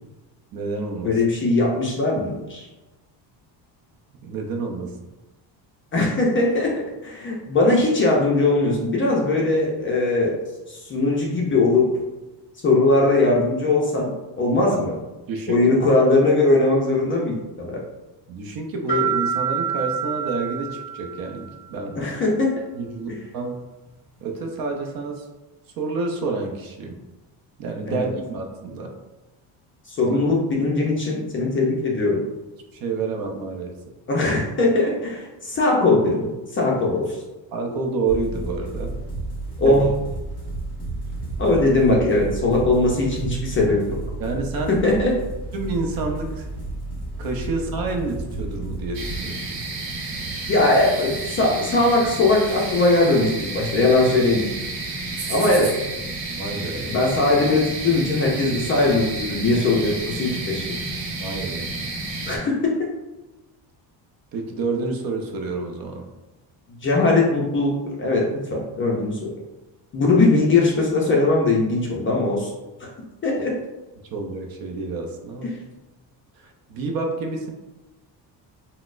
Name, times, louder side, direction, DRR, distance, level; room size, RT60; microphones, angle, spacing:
voice 1, 0.5-1.2 4.2-4.9 14.7-14.8 15.3-15.6 18.3-22.0 22.7-23.5 24.2-25.3 25.8-27.0 27.6-28.9 30.1-30.4 32.8-33.7 37.5-39.0 39.6-39.8 44.2-44.8 45.5-46.5 47.2-49.6 56.4-56.9 61.2-61.7 64.3-66.1 73.4-73.5 74.1-75.6 76.4-77.5, right 3 dB, 50° right, 2 dB, 0.5 m, -29 dB
voice 2, 1.0-2.7 5.9-10.3 10.7-11.9 12.6-14.9 15.5-17.8 22.0-22.6 27.9-28.1 29.9-32.2 34.1-37.2 39.6-39.9 41.4-43.8 44.7-45.1 50.4-54.5 55.3-55.7 56.8-60.7 62.3-62.7 66.8-67.7 68.0-69.3 69.9-72.5 72.8-72.9 73.2-73.5, left 2 dB, 30° left, -3 dB, 0.3 m, -20 dB
sound 1, 18.9-21.5, right 8 dB, 20° right, 1.3 m, -27 dB
sound 2, 38.1-49.2, right 2 dB, 10° left, 1.3 m, -32 dB
sound 3, 48.9-62.4, right 3 dB, 85° right, 0.8 m, -31 dB
3.9 x 2.0 x 2.4 m, 1.1 s
cardioid pair, 155°, 45 cm